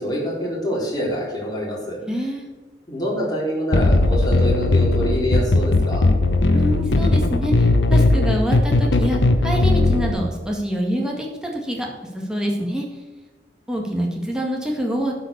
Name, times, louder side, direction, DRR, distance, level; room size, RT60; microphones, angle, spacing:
voice 1, 0.0-2.0 2.9-6.1, equal, 25° left, -5 dB, 4.2 m, -25 dB
voice 2, 2.0-2.5 6.4-9.2 9.4-11.9 12.1-12.9 13.7-15.1, equal, 5° right, -1 dB, 1.9 m, -26 dB
sound 1, 3.7-10.1, left 2 dB, 85° left, 1.0 m, -18 dB
11.5 x 5.5 x 6.7 m, 1.2 s
head